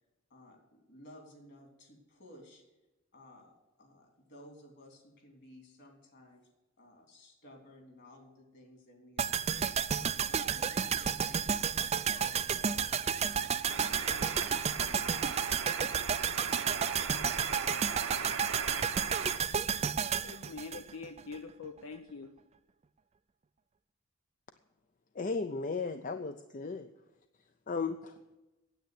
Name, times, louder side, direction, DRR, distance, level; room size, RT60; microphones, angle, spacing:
voice 1, 0.3-2.6 3.1-6.5 6.8-12.8 13.2-18.5, left 1 dB, 55° left, 2 dB, 3.3 m, -56 dB
sound 1, 9.2-21.4 21.6-21.7, right 7 dB, 30° right, 0.4 m, -32 dB
sound 2, 13.7-19.4, right 6 dB, 80° right, 1.1 m, -39 dB
voice 2, 20.2-22.3, left 4 dB, 80° left, 6 dB, 0.7 m, -44 dB
voice 3, 25.2-26.9 27.7-28.1, left 4 dB, 40° left, 9 dB, 0.5 m, -35 dB
9.3 x 8.6 x 9.3 m, 1.1 s
head